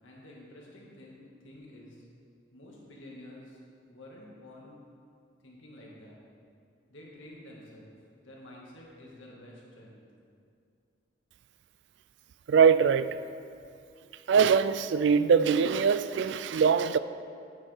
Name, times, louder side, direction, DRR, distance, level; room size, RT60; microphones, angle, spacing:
voice 1, 0.0-1.2 1.4-2.0 2.5-3.6 3.8-4.7 5.4-6.2 6.9-7.9 8.2-10.0, left 1 dB, 80° left, 2.0 m, -49 dB
voice 2, 12.5-13.2 14.3-17.0, right 6 dB, 65° right, 0.3 m, -22 dB
9.5 x 9.0 x 3.6 m
head